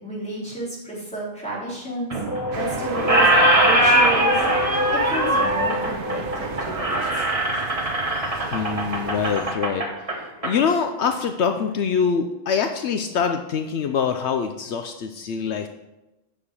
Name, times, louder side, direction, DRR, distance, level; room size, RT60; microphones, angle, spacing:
voice 1, 0.0-2.2 2.6-3.3 3.6-4.4 4.9-7.0, right 1 dB, 5° left, -7 dB, 3.9 m, -31 dB
Squeak, 2.1-2.7 2.9-10.5, right 1 dB, 30° right, 1.5 m, -21 dB
sound 1, 2.3-8.0, left 1 dB, 25° left, 0.7 m, -29 dB
sound 2, 2.5-9.5, right 6 dB, 55° right, 0.8 m, -35 dB
voice 2, 8.5-9.8 10.4-15.7, left 6 dB, 75° left, 7 dB, 0.9 m, -24 dB
9.4 x 6.6 x 5.4 m, 0.98 s
omnidirectional pair, 1.2 m